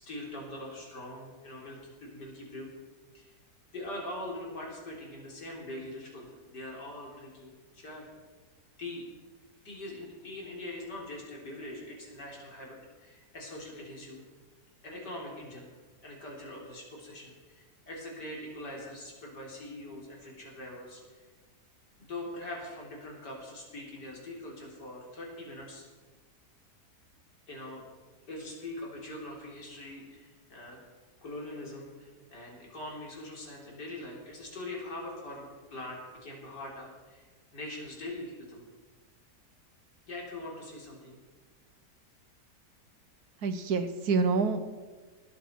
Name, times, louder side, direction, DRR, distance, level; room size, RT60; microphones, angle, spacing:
voice 1, 0.0-2.7 3.1-3.3 3.7-8.1 8.8-9.0 9.6-14.2 14.8-15.7 16.0-21.0 22.0-25.9 27.5-27.8 28.3-30.8 31.2-37.2 37.5-38.6 40.1-41.2, left 1 dB, 80° left, -2 dB, 4.4 m, -42 dB
voice 2, 43.4-44.6, right 4 dB, 65° right, 10 dB, 1.6 m, -27 dB
19.0 x 13.5 x 4.7 m, 1.4 s
omnidirectional pair, 1.8 m